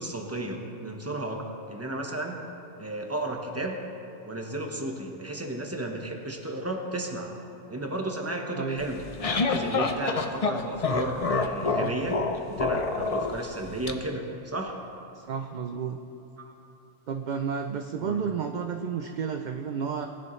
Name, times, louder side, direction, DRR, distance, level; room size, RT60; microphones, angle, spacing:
voice 1, 0.0-2.4 2.8-3.8 4.3-7.3 7.7-12.2 12.5-14.8 16.4-16.6 18.0-18.2, right 1 dB, 15° right, 1 dB, 1.0 m, -33 dB
sound 1, 8.8-13.9, left 4 dB, 40° left, 0.6 m, -27 dB
voice 2, 15.1-16.0 17.1-20.1, right 6 dB, 55° right, 5 dB, 0.5 m, -31 dB
19.0 x 10.5 x 3.2 m, 2.7 s
omnidirectional pair, 1.3 m